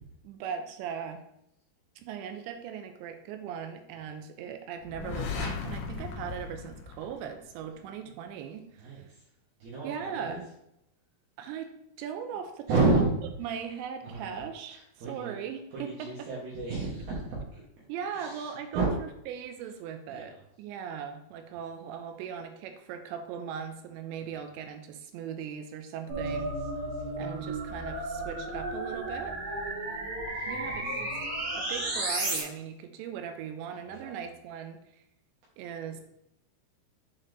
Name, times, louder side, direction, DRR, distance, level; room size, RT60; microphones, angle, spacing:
voice 1, 0.2-1.3 2.0-9.0 9.8-10.5 11.4-12.7 12.9-13.1 13.4-14.8 15.1-16.3 17.9-26.5 27.2-29.4 30.5-31.2 31.5-34.8 35.6-36.0, right 7 dB, 80° right, 7 dB, 2.9 m, -39 dB
sound 1, 4.8-7.7, left 5 dB, 85° left, 1.9 m, -36 dB
voice 2, 8.8-9.2 9.6-10.4 12.7-13.1 14.0-14.3 14.7-15.3 15.7-17.6 18.1-18.9 20.1-20.3 24.2-24.3 26.3-27.1 30.3-30.8 33.9-34.2, right 3 dB, 65° right, -6 dB, 3.0 m, -31 dB
sound 2, 26.1-32.4, right 2 dB, 45° right, 2.5 m, -33 dB
7.7 x 4.2 x 3.8 m, 0.79 s
omnidirectional pair, 5.1 m